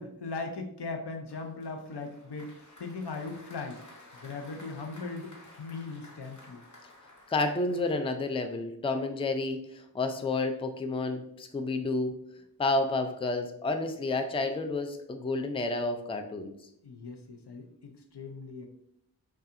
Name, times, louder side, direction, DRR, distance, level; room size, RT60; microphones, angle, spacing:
voice 1, 0.0-3.8 4.2-6.6 16.8-18.7, left 3 dB, 80° left, 3 dB, 0.7 m, -39 dB
Applause, 1.3-8.4, left 2 dB, 45° left, 0.9 m, -54 dB
voice 2, 7.3-12.2 12.6-16.5, left 2 dB, 15° left, 7 dB, 0.3 m, -30 dB
5.4 x 2.4 x 2.5 m, 0.74 s
wide cardioid pair, 60°, 40 cm